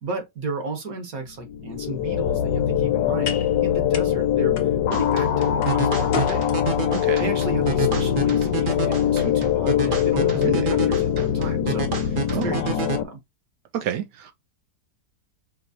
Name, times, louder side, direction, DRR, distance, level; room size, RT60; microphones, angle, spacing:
voice 1, 0.0-4.6 4.9-6.5 7.2-13.2, right 3 dB, 55° right, 1.6 m, -34 dB
sound 1, 1.5-13.0, left 10 dB, 80° left, 1.2 m, -22 dB
sound 2, 1.7-10.1, left 5 dB, 45° left, 0.8 m, -39 dB
sound 3, 4.9-13.0, right 5 dB, 40° right, 0.8 m, -30 dB
voice 2, 6.9-7.3 10.4-10.7 12.3-12.5 13.7-14.3, right 10 dB, 75° right, 1.2 m, -29 dB
5.2 x 3.0 x 2.8 m
omnidirectional pair, 1.9 m